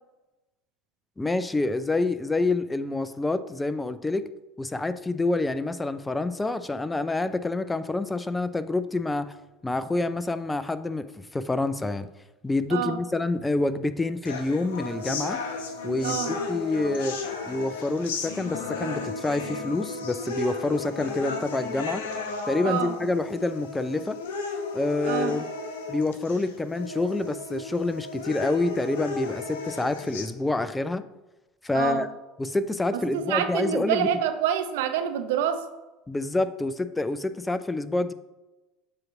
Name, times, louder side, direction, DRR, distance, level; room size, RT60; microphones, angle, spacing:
voice 1, 1.2-4.3 4.6-9.3 9.6-12.1 12.4-15.4 15.8-17.2 17.5-22.0 22.5-24.2 24.7-25.5 25.9-31.0 31.6-32.1 32.4-34.1 36.1-38.1, left 2 dB, 15° left, 12 dB, 0.5 m, -27 dB
sound 1, 14.3-30.3, left 3 dB, 75° left, 0.9 m, -34 dB
voice 2, 16.0-16.4 22.6-22.9 25.0-25.4 31.7-32.1 33.1-35.7, right 9 dB, 75° right, 8 dB, 0.6 m, -27 dB
7.6 x 3.0 x 5.9 m, 1.1 s
hypercardioid pair, 80°, 0 cm